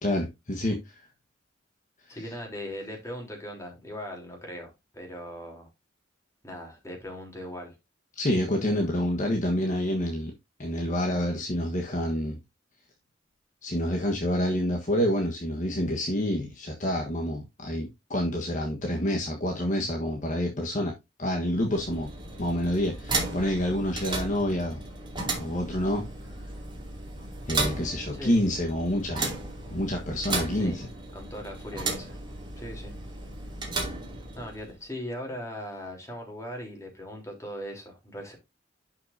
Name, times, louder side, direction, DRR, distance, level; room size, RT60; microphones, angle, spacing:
voice 1, 0.0-1.0 2.1-2.2 8.2-10.3 10.6-12.4 13.6-22.1 22.4-24.8 25.3-26.0 27.5-29.4 29.7-30.9, equal, 45° left, 1.4 m, -28 dB
voice 2, 2.1-5.7 6.4-7.8 28.1-28.4 30.5-30.8 31.1-32.2 32.6-32.9 34.4-38.4, equal, 15° left, 3.6 m, -39 dB
sound 1, 21.5-34.8, right 3 dB, 25° right, 2.8 m, -35 dB
11.5 x 5.9 x 2.7 m
head